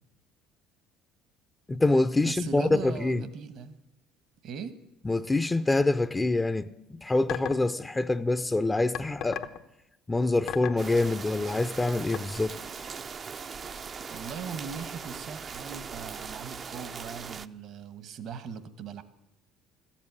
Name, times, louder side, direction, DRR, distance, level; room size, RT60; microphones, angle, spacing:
voice 1, 1.7-3.2 5.0-9.4 10.1-12.5, left 2 dB, 15° left, 0.5 m, -26 dB
voice 2, 2.2-3.8 4.4-4.8 14.1-19.0, right 6 dB, 60° right, 1.1 m, -39 dB
sound 1, 7.3-7.7 8.9-9.6 10.5-10.8 12.1-12.2, left 9 dB, 70° left, 0.9 m, -33 dB
sound 2, 10.8-17.5, right 6 dB, 40° right, 0.5 m, -40 dB
14.0 x 7.5 x 9.6 m
supercardioid pair, 80°, 0 cm